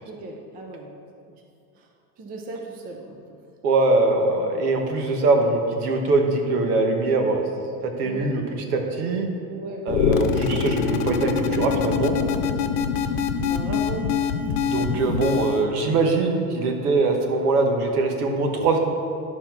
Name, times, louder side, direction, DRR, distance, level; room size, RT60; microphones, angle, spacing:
voice 1, 0.1-0.9 2.2-3.2 8.0-8.3 9.5-9.9 12.9-14.1 14.4-15.2, right 2 dB, 20° right, 1 dB, 0.6 m, -37 dB
voice 2, 3.6-8.4 8.7-9.3 9.8-12.2 14.7-18.8, right 3 dB, 70° right, 3 dB, 1.5 m, -22 dB
sound 1, 9.9-15.6, left 6 dB, 70° left, 0.9 m, -24 dB
11.5 x 4.3 x 5.8 m, 2.4 s
supercardioid pair, 150°, 47 cm